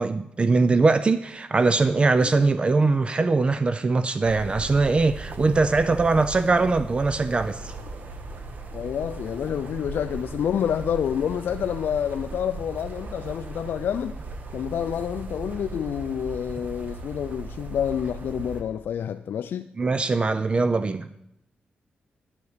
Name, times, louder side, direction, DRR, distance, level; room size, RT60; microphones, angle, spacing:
voice 1, 0.0-7.7 19.8-21.2, right 3 dB, 30° right, 0.4 m, -22 dB
sound 1, 4.2-18.6, right 3 dB, 50° right, 1.4 m, -37 dB
voice 2, 8.7-14.2 14.5-19.7, left 9 dB, 75° left, 0.3 m, -28 dB
11.0 x 6.9 x 6.6 m
cardioid pair, 110°, 4 cm